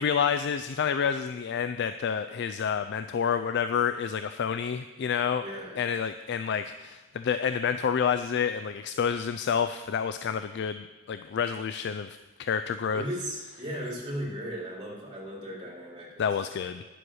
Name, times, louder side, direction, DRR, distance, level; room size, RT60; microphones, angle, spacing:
voice 1, 0.0-5.4 5.8-13.0 16.2-16.8, left 7 dB, 55° left, 10 dB, 0.3 m, -29 dB
voice 2, 5.4-5.8 12.9-16.7, equal, 20° right, -5 dB, 3.7 m, -37 dB
9.8 x 7.7 x 6.3 m, 1.2 s
head